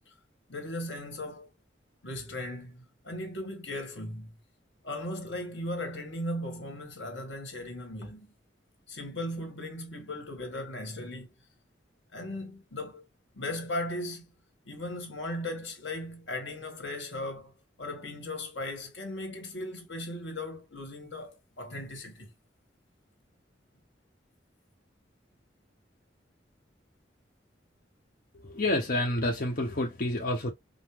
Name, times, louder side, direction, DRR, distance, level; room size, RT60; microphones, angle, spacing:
voice 1, 0.5-1.5 2.0-4.3 4.8-8.3 8.9-11.3 12.1-13.0 13.3-14.3 14.6-17.5 17.8-22.3, left 1 dB, 85° left, 1.5 m, -37 dB
voice 2, 28.3-30.5, left 1 dB, 50° left, 0.9 m, -29 dB
5.3 x 2.1 x 3.1 m
head